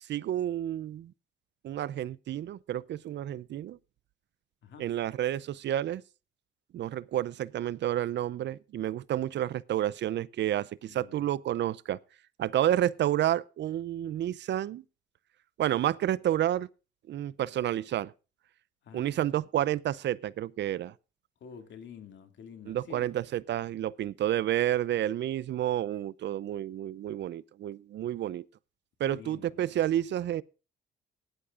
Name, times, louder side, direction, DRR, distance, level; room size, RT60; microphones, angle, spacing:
voice 1, 0.1-1.1 1.6-3.8 4.8-6.0 6.7-12.0 12.4-14.8 15.6-16.7 17.1-18.1 18.9-20.9 22.7-28.4 29.0-30.4, right 12 dB, 60° right, 0.5 m, -30 dB
voice 2, 4.6-5.0 10.9-11.2 18.8-19.4 21.4-23.1 29.0-29.5, left 7 dB, 65° left, 2.4 m, -48 dB
18.0 x 11.5 x 2.5 m
cardioid pair, 90°, 20 cm